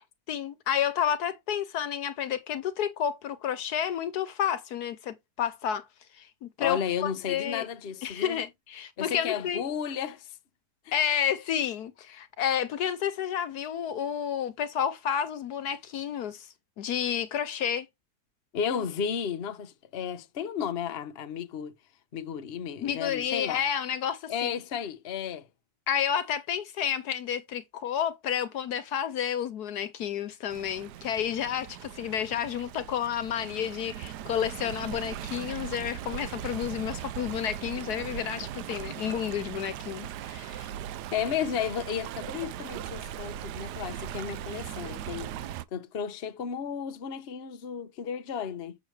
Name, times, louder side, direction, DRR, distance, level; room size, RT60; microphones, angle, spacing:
voice 1, 0.3-5.9 6.1-7.7 8.0-9.6 10.9-16.5 16.8-17.9 22.8-24.5 25.9-40.7, left 9 dB, 70° left, 1.3 m, -30 dB
voice 2, 6.6-8.4 9.0-10.3 18.5-21.7 22.1-23.6 24.3-25.5 41.1-45.3 45.7-48.8, left 7 dB, 45° left, 1.0 m, -33 dB
Stream, 30.5-45.6, right 11 dB, 75° right, 1.2 m, -39 dB
7.6 x 6.4 x 3.3 m
omnidirectional pair, 1.8 m